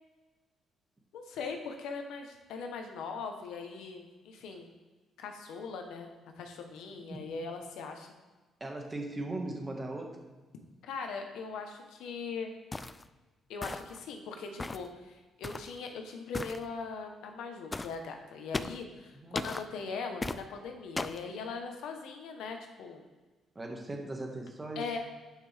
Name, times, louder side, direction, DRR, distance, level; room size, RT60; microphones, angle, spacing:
voice 1, 1.1-4.7 5.2-6.1 6.4-8.1 10.8-12.5 13.5-23.0 24.7-25.0, left 4 dB, 85° left, 4 dB, 1.1 m, -40 dB
voice 2, 8.6-10.3 19.1-19.4 23.6-24.8, right 2 dB, 20° right, 1 dB, 1.7 m, -38 dB
sound 1, 12.7-13.0 13.6-14.0 14.6-14.9 15.4-15.7 16.3-16.6 17.7-17.9 18.5-18.8 19.3-19.6 20.2-20.4 21.0-21.2, left 2 dB, 20° left, 0.4 m, -36 dB
10.0 x 5.8 x 3.5 m, 1.2 s
cardioid pair, 90°, 0 cm